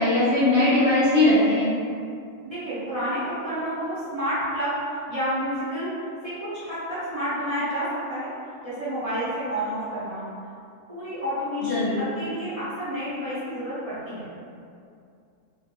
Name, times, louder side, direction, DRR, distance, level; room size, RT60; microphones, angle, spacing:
voice 1, 0.0-1.7 11.6-12.1, left 1 dB, 55° left, -10 dB, 0.8 m, -20 dB
voice 2, 2.4-8.3 8.6-10.3 10.9-14.3, equal, 30° right, -14 dB, 0.8 m, -30 dB
2.5 x 2.3 x 2.8 m, 2.4 s
omnidirectional pair, 1.4 m